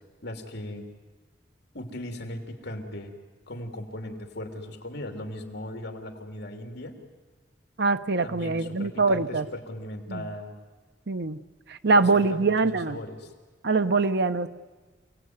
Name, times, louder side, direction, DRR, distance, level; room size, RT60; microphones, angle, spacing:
voice 1, 0.2-0.9 1.7-3.1 3.5-7.0 8.2-10.5 11.9-13.3, left 1 dB, 65° left, 4 dB, 3.2 m, -38 dB
voice 2, 7.8-9.5 10.1-10.3 11.1-11.4 11.7-13.0 13.6-14.5, right 3 dB, 65° right, 10 dB, 0.9 m, -23 dB
29.0 x 18.0 x 9.6 m, 1.4 s
head